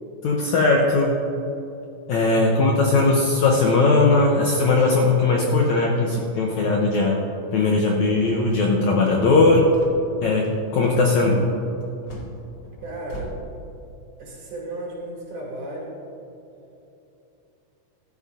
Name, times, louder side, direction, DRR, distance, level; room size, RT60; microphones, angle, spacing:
voice 1, 0.2-1.2 2.1-7.2 7.5-9.6 10.2-10.4 10.7-11.4, left 3 dB, 75° left, -1 dB, 1.7 m, -19 dB
voice 2, 2.3-3.0 12.8-13.3 14.2-16.0, right 2 dB, 80° right, -5 dB, 4.7 m, -35 dB
sound 1, 8.2-13.3, equal, 40° left, 1.4 m, -41 dB
14.5 x 12.5 x 2.6 m, 2.9 s
omnidirectional pair, 4.3 m